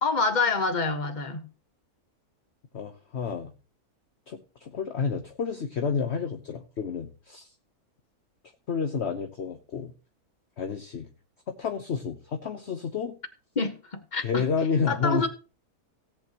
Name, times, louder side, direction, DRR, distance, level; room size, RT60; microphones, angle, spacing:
voice 1, 0.0-1.4 13.5-14.4 14.9-15.3, left 3 dB, 30° left, 1.6 m, -27 dB
voice 2, 2.7-3.5 4.3-7.5 8.7-9.9 10.6-11.1 11.5-13.2 14.2-15.3, left 5 dB, 50° left, 1.2 m, -30 dB
17.5 x 8.7 x 3.0 m
omnidirectional pair, 1.6 m